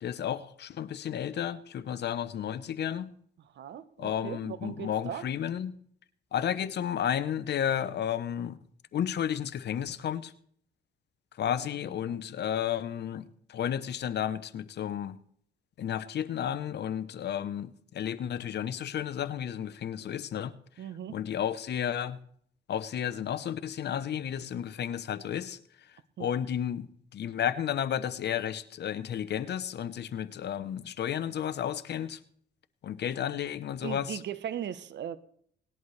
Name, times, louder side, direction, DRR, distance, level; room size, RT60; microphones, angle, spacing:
voice 1, 0.0-3.1 4.0-5.7 6.3-8.6 8.9-10.3 11.4-15.2 15.8-20.5 21.1-22.2 22.7-25.6 26.2-32.2 32.8-34.2, left 9 dB, 60° left, 14 dB, 0.8 m, -32 dB
voice 2, 3.5-5.2 11.5-11.7 12.0-12.2 20.8-21.1 26.2-26.3 33.8-35.2, right 9 dB, 65° right, 14 dB, 0.9 m, -38 dB
19.0 x 11.0 x 3.2 m, 0.64 s
cardioid pair, 90°, 20 cm